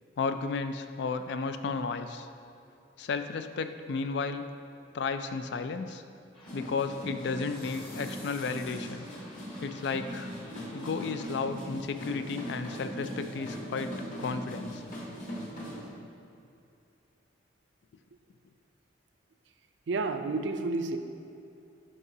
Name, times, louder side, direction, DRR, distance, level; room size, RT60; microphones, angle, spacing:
voice 1, 0.2-2.3 3.0-4.5 4.9-6.0 6.5-9.0 9.6-10.3 10.7-13.9 14.2-14.8, left 4 dB, 60° left, 9 dB, 0.3 m, -33 dB
sound 1, 6.3-11.4, left 1 dB, 30° left, 1.0 m, -50 dB
sound 2, 6.4-15.9, equal, 45° left, 1.3 m, -40 dB
voice 2, 19.9-21.0, right 3 dB, 70° right, 7 dB, 0.4 m, -30 dB
11.0 x 4.8 x 2.7 m, 2.7 s
head